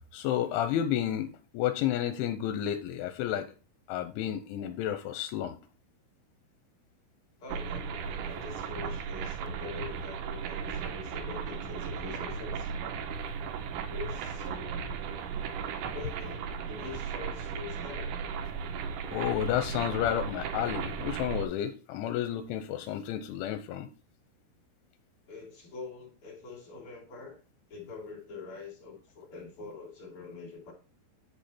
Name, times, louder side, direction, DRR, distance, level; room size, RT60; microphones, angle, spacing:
voice 1, 0.1-3.5 3.9-5.6 19.1-23.9, left 11 dB, 80° left, 3.0 m, -31 dB
voice 2, 7.4-12.7 13.9-15.2 15.9-18.2 18.5-18.7 18.9-19.1 25.3-27.4 27.7-30.7, left 4 dB, 30° left, 3.0 m, -45 dB
sound 1, 7.5-21.5, right 6 dB, 70° right, 3.0 m, -36 dB
10.5 x 5.2 x 4.2 m
omnidirectional pair, 5.8 m